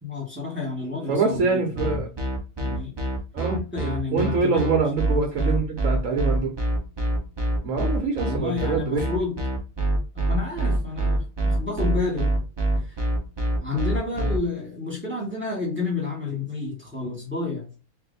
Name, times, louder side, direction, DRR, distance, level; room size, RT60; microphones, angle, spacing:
voice 1, 0.0-2.0 2.6-2.9 3.5-4.6 5.4-5.5 8.2-9.4 10.1-12.3 12.8-13.0 13.6-17.6, left 3 dB, 10° right, 1.4 m, -30 dB
voice 2, 1.1-2.1 3.3-3.6 4.1-6.6 7.6-9.1 14.2-14.3, right 4 dB, 60° right, 1.1 m, -24 dB
sound 1, 1.8-14.4, right 1 dB, 40° right, 0.3 m, -25 dB
3.5 x 2.6 x 4.0 m
omnidirectional pair, 1.7 m